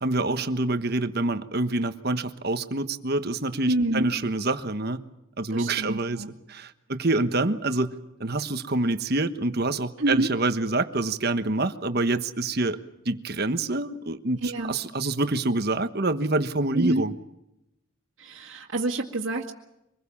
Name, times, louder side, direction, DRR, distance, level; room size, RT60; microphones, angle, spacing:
voice 1, 0.0-5.0 5.4-7.9 8.2-12.8 13.0-17.1, right 2 dB, 45° right, 10 dB, 1.3 m, -26 dB
voice 2, 3.7-4.1 5.5-6.3 10.0-10.3 14.4-14.7 16.7-17.0 18.2-19.5, right 1 dB, 60° right, -2 dB, 2.2 m, -27 dB
25.0 x 21.0 x 7.2 m, 0.89 s
head